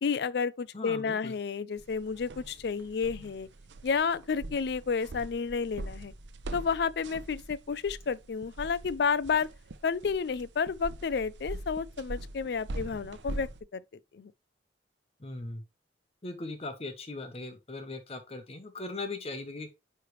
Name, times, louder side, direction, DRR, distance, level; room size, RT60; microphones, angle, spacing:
voice 1, 0.0-3.5 3.8-6.1 6.5-9.5 9.8-13.8 14.1-14.3, left 5 dB, 60° left, 0.4 m, -31 dB
voice 2, 0.7-1.3 15.2-15.6 16.2-19.7, left 2 dB, 35° left, 0.8 m, -39 dB
sound 1, 1.8-13.6, right 2 dB, 80° right, 0.7 m, -43 dB
9.5 x 3.2 x 3.1 m
head